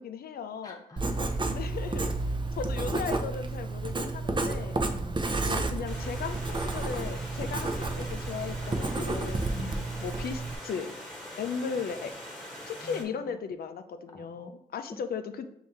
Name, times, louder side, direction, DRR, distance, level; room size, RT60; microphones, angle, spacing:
voice 1, 0.0-0.8 1.4-2.1 2.5-4.8 5.4-9.5 10.0-10.9 11.4-12.1 12.7-15.5, left 6 dB, 70° left, 9 dB, 0.5 m, -36 dB
voice 2, 0.6-1.6 4.8-5.2 9.5-9.9 12.8-13.1 14.1-14.5, left 3 dB, 20° left, 1 dB, 0.6 m, -45 dB
Writing, 1.0-10.6, right 2 dB, 30° right, 0.6 m, -31 dB
Stream, 5.9-13.0, left 1 dB, 5° left, 1.4 m, -43 dB
5.5 x 2.7 x 3.3 m, 0.77 s
supercardioid pair, 50°, 16 cm